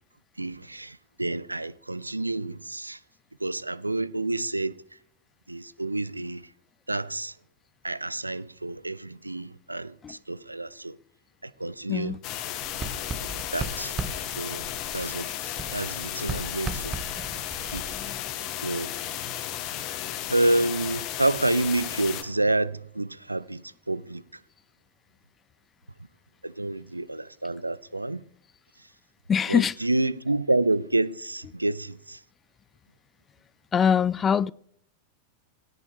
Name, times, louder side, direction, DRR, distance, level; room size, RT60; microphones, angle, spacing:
voice 1, 0.4-3.0 3.4-4.7 5.5-6.5 6.9-7.3 7.8-11.0 11.4-12.2 13.2-14.0 14.4-14.6 14.9-16.9 17.6-17.8 18.6-18.9 20.3-24.2 26.4-28.2 29.5-32.2, right 2 dB, 85° right, 0.4 m, -29 dB
voice 2, 11.9-12.2 17.9-18.2 29.3-29.7 33.7-34.5, left 7 dB, 20° left, 0.3 m, -23 dB
sound 1, 12.2-22.2, left 11 dB, 40° left, 1.4 m, -34 dB
Writing, 12.6-15.3 15.6-18.3, right 3 dB, 15° right, 0.9 m, -37 dB
17.0 x 8.7 x 3.3 m
figure-of-eight pair, 90°, 0 cm